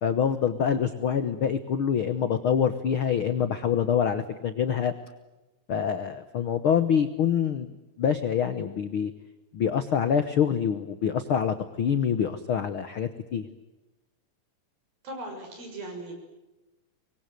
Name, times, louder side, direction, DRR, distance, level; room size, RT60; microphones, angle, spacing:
voice 1, 0.0-4.9 5.7-7.7 8.0-9.1 9.5-13.5, left 8 dB, 80° left, 10 dB, 1.1 m, -25 dB
voice 2, 15.0-16.1, right 1 dB, 85° right, 3 dB, 8.2 m, -38 dB
25.5 x 22.0 x 9.2 m, 1.1 s
omnidirectional pair, 4.1 m